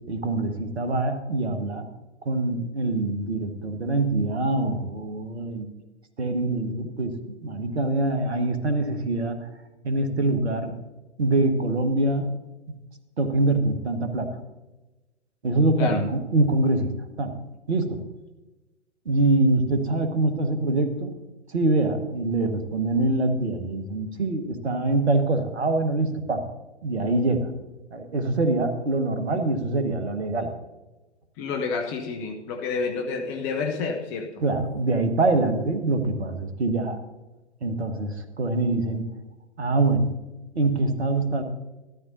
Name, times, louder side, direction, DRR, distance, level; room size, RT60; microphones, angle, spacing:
voice 1, 0.0-1.9 2.2-5.7 6.2-9.5 9.8-10.8 11.2-12.3 12.7-12.8 13.2-14.4 15.4-16.9 17.2-17.4 17.7-18.0 19.0-21.1 21.5-26.5 26.8-27.5 27.9-30.5 34.4-37.0 37.6-39.1 39.6-40.2 40.5-41.4, right 2 dB, 70° right, 8 dB, 1.5 m, -24 dB
voice 2, 31.4-34.3, left 4 dB, 30° left, 4 dB, 0.9 m, -29 dB
13.5 x 13.0 x 2.7 m, 1.1 s
figure-of-eight pair, 110°, 34 cm